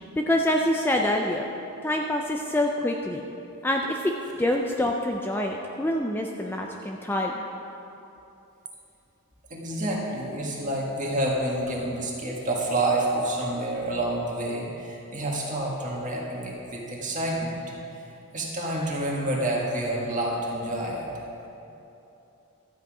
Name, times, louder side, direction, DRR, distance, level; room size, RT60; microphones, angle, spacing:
voice 1, 0.2-1.5 1.8-3.2 3.6-7.4, left 1 dB, 10° left, 1 dB, 0.4 m, -26 dB
voice 2, 9.5-17.6 18.3-21.1, right 1 dB, 35° right, -3 dB, 1.8 m, -28 dB
12.5 x 8.3 x 4.9 m, 2.9 s
head